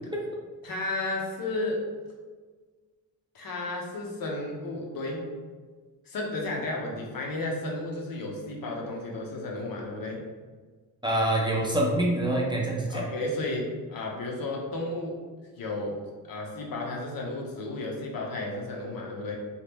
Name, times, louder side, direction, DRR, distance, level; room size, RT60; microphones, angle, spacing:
voice 1, 0.6-1.9 3.3-5.3 6.1-10.2 12.9-15.2 15.6-16.0 16.3-19.4, left 2 dB, 65° left, -1 dB, 0.8 m, -33 dB
voice 2, 11.0-13.0, right 1 dB, 10° right, -3 dB, 0.5 m, -26 dB
2.9 x 2.4 x 3.5 m, 1.4 s
cardioid pair, 100°, 38 cm